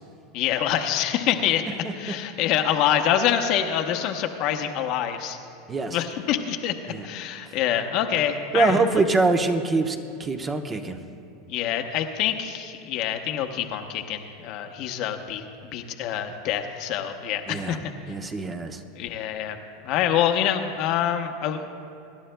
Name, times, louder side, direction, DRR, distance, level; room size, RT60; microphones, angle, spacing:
voice 1, 0.3-1.6 1.9-5.4 5.9-8.8 11.5-17.9 19.0-19.6 19.8-21.7, left 10 dB, 55° left, 5 dB, 0.9 m, -26 dB
voice 2, 8.5-11.0 17.5-17.8 18.1-18.8, right 3 dB, 25° right, 6 dB, 0.9 m, -24 dB
24.5 x 11.0 x 2.2 m, 2.6 s
hypercardioid pair, 100°, 0 cm